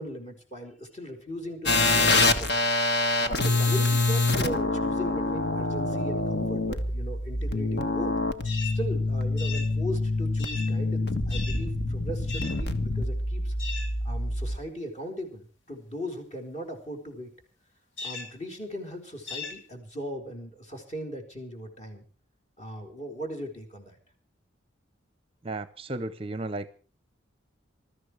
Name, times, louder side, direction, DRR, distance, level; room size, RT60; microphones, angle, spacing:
voice 1, 0.0-2.6 3.2-8.1 8.6-13.5 14.0-17.3 18.0-22.0 22.6-24.0, equal, 35° left, 4 dB, 4.3 m, -38 dB
sound 1, 1.7-14.6, left 2 dB, 55° left, 1.5 m, -26 dB
sound 2, 3.8-3.9 8.4-8.8 9.4-9.8 10.4-10.8 11.3-11.7 12.3-12.6 13.6-14.0 18.0-18.4 19.3-19.6, left 5 dB, 80° left, 2.7 m, -37 dB
voice 2, 25.4-26.7, right 2 dB, 30° right, 14 dB, 0.7 m, -34 dB
21.0 x 13.5 x 4.8 m, 0.38 s
head